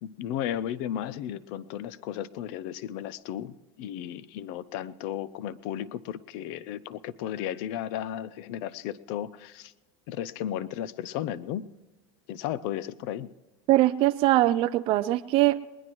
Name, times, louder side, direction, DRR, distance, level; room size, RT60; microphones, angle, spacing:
voice 1, 0.0-9.7 10.1-11.7 12.3-13.3, left 11 dB, 60° left, 18 dB, 0.7 m, -34 dB
voice 2, 13.7-15.6, right 16 dB, 40° right, 10 dB, 0.4 m, -22 dB
20.5 x 20.0 x 3.1 m, 1.2 s
supercardioid pair, 155°, 14 cm